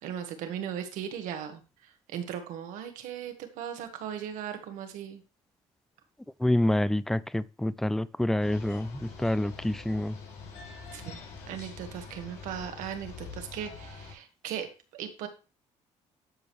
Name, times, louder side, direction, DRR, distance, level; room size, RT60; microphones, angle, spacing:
voice 1, 0.0-5.2 10.9-11.2 11.5-14.7 14.9-15.3, right 9 dB, 80° right, 1.6 m, -38 dB
voice 2, 6.4-8.9 9.2-10.1, left 1 dB, 5° left, 0.4 m, -27 dB
sound 1, 8.4-14.2, left 4 dB, 75° left, 4.5 m, -45 dB
12.0 x 5.1 x 3.1 m
supercardioid pair, 80°, 13 cm